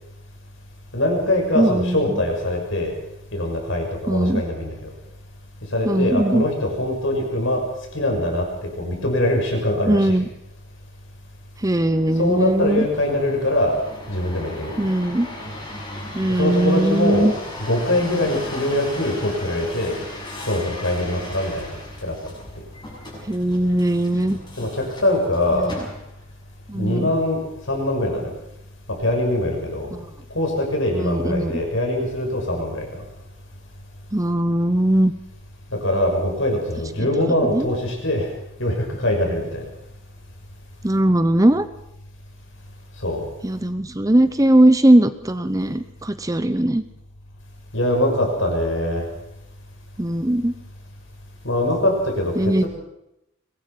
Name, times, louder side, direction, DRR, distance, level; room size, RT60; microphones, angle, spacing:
voice 1, 0.9-2.9 3.3-4.9 5.7-7.6 7.9-10.2 12.2-13.8 14.1-14.9 16.3-17.3 17.6-20.0 20.5-21.7 22.0-22.3 24.6-25.7 26.7-27.4 27.7-28.3 28.9-29.9 30.3-33.0 35.7-38.3 38.6-39.6 43.0-43.2 47.7-49.1 51.4-52.7, left 1 dB, 60° left, 1 dB, 6.8 m, -23 dB
voice 2, 1.5-2.2 4.1-4.4 5.8-6.5 9.9-10.3 11.6-12.9 14.8-15.3 16.1-17.3 23.3-24.4 25.5-25.7 26.7-27.1 29.9-30.1 31.0-31.5 34.1-35.1 37.0-37.1 37.5-37.7 40.8-41.7 43.4-46.8 50.0-50.5 52.4-52.6, right 1 dB, 15° right, 11 dB, 0.8 m, -19 dB
sound 1, 11.8-26.3 26.9-27.4, left 1 dB, 20° left, 6.5 m, -37 dB
23.5 x 20.0 x 6.0 m, 0.85 s
head